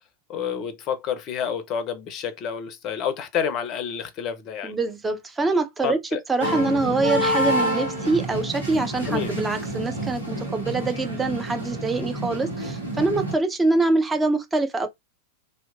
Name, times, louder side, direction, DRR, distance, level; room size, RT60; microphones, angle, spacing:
voice 1, 0.3-4.7 5.8-6.2 9.0-9.3, left 7 dB, 35° left, 0.5 m, -29 dB
voice 2, 4.6-6.0 6.3-14.9, right 3 dB, 10° right, 0.5 m, -24 dB
sound 1, 6.4-13.3, equal, 90° right, 0.9 m, -28 dB
2.8 x 2.1 x 2.3 m
figure-of-eight pair, 90°, 0 cm